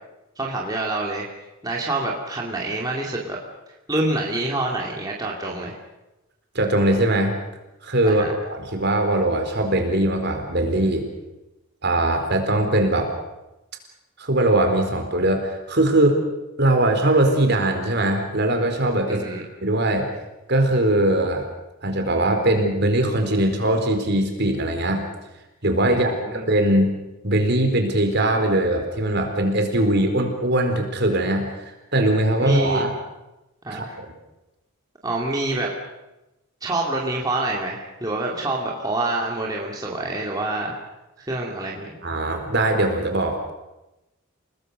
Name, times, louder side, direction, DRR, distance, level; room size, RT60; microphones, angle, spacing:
voice 1, 0.4-1.3 1.6-3.4 3.9-5.7 8.0-8.3 19.1-19.4 25.9-26.5 32.4-32.8 33.6-34.0 35.0-35.7 36.6-40.8 41.2-42.0, right 2 dB, 15° right, -2 dB, 2.7 m, -27 dB
voice 2, 6.5-7.4 7.8-8.2 8.5-11.1 11.8-13.1 14.2-16.2 16.6-19.2 19.6-20.1 20.5-21.4 21.8-25.0 25.6-26.9 27.2-32.9 33.7-34.1 42.0-43.5, right 1 dB, 50° right, 4 dB, 4.2 m, -21 dB
30.0 x 19.5 x 6.7 m, 1.0 s
head